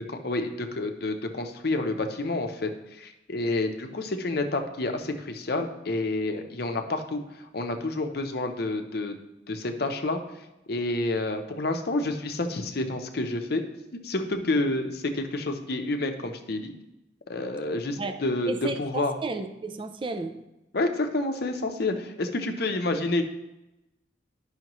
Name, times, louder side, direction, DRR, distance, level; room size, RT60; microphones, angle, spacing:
voice 1, 0.1-9.2 9.5-10.2 10.7-13.6 14.0-16.7 17.3-18.5 18.8-19.1 20.7-23.2, left 2 dB, 55° left, 5 dB, 0.7 m, -29 dB
voice 2, 18.5-20.4, right 3 dB, 25° right, 7 dB, 0.4 m, -33 dB
11.0 x 5.7 x 3.0 m, 0.96 s
head